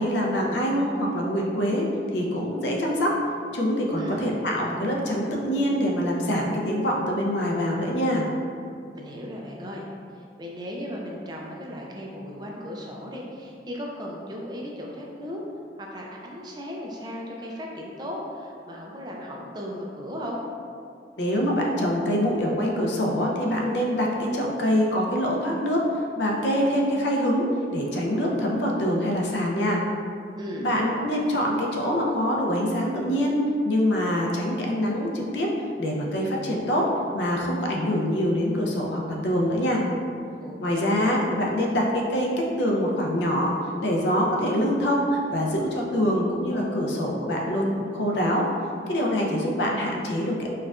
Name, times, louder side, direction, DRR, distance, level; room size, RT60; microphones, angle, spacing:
voice 1, 0.0-1.9 2.1-3.1 3.5-8.3 21.2-25.8 26.2-29.8 30.6-35.5 35.8-36.8 37.1-39.8 40.6-43.5 43.8-48.5 48.9-50.5, equal, 80° left, -1 dB, 0.5 m, -24 dB
voice 2, 4.0-4.3 8.9-9.9 10.1-15.4 15.8-20.4 30.4-30.7 40.4-41.0, equal, 25° right, -2 dB, 0.3 m, -36 dB
4.3 x 2.3 x 2.3 m, 2.4 s
head